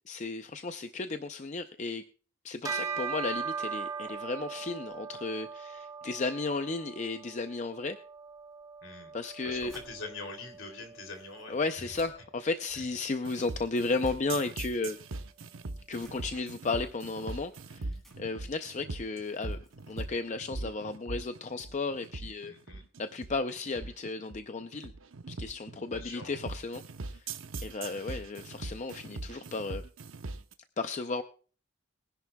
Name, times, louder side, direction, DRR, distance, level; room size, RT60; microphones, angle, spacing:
voice 1, 0.1-2.0 2.4-8.0 9.1-9.7 11.5-15.0 15.9-19.6 19.9-22.5 23.0-24.9 25.3-27.3 27.6-29.8 30.8-31.2, left 3 dB, 35° left, 9 dB, 0.5 m, -34 dB
Bell, 2.6-12.3, right 5 dB, 15° right, 0.7 m, -40 dB
voice 2, 8.8-9.1 9.4-12.0 12.7-12.8 22.5-22.8 25.9-26.4, left 3 dB, 65° left, 4 dB, 3.0 m, -44 dB
sound 1, 9.3-21.0, right 1 dB, ahead, 3.2 m, -61 dB
sound 2, 13.2-30.5, right 3 dB, 65° right, 0.8 m, -41 dB
22.5 x 10.5 x 2.3 m, 0.40 s
head